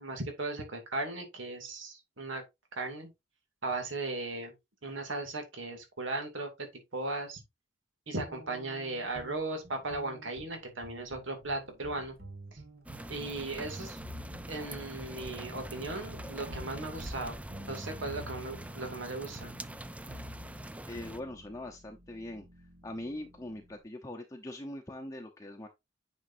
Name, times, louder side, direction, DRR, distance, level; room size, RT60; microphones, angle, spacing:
voice 1, 0.0-2.4 2.7-3.1 3.6-4.5 4.8-6.7 6.9-7.4 8.1-12.1 12.5-12.6 13.1-14.0 14.5-17.4 17.7-19.5, right 2 dB, 75° right, 2.4 m, -37 dB
sound 1, 8.3-23.8, equal, 55° right, 1.7 m, -50 dB
sound 2, 12.9-21.2, right 1 dB, 5° right, 0.4 m, -44 dB
voice 2, 20.9-25.7, left 1 dB, 15° left, 0.8 m, -42 dB
9.4 x 5.3 x 2.6 m
head